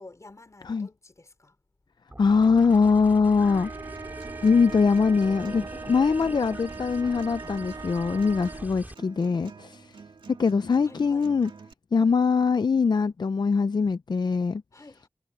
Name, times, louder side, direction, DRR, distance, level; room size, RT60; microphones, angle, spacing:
voice 1, 0.0-1.6 5.7-6.0 8.4-8.5 10.8-11.3 14.7-15.1, left 2 dB, 40° left, 4.4 m, -50 dB
sound 1, 2.1-8.9, right 1 dB, 20° right, 5.0 m, -43 dB
voice 2, 2.2-3.7 4.4-10.0 10.4-11.5 11.9-14.6, left 5 dB, 60° left, 0.5 m, -22 dB
sound 2, 3.3-8.8, right 4 dB, 50° right, 1.7 m, -40 dB
Acoustic guitar, 3.7-11.7, right 5 dB, 90° right, 2.2 m, -49 dB
wide cardioid pair, 80°, 8 cm